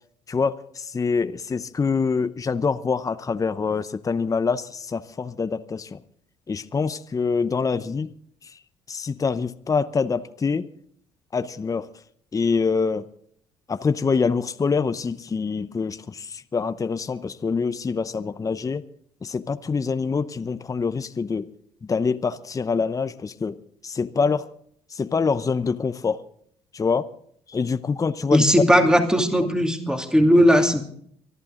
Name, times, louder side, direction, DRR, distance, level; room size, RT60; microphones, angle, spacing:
voice 1, 0.3-6.0 6.5-8.1 8.9-10.7 11.3-11.9 12.3-13.0 13.7-18.8 19.2-21.5 21.9-23.6 23.8-24.5 24.9-26.2 26.7-27.1 27.5-28.4, left 5 dB, 25° left, 12 dB, 0.8 m, -25 dB
voice 2, 28.3-30.8, equal, 5° right, 5 dB, 2.5 m, -17 dB
24.5 x 11.5 x 3.8 m, 0.63 s
supercardioid pair, 75°, 13 cm